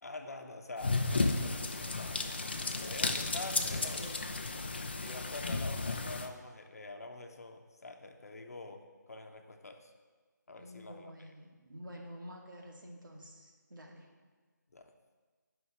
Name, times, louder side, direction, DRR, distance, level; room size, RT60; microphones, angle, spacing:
voice 1, 0.0-2.2 2.8-4.0 5.0-8.8 9.1-9.9 10.5-11.1 14.7-14.9, left 2 dB, 50° left, 5 dB, 0.9 m, -46 dB
sound 1, 0.8-6.3, left 3 dB, 30° left, 0.5 m, -33 dB
voice 2, 3.5-4.2 10.6-14.1, equal, 90° right, 0 dB, 2.2 m, -49 dB
9.7 x 5.5 x 6.1 m, 1.4 s
figure-of-eight pair, 175°, 10 cm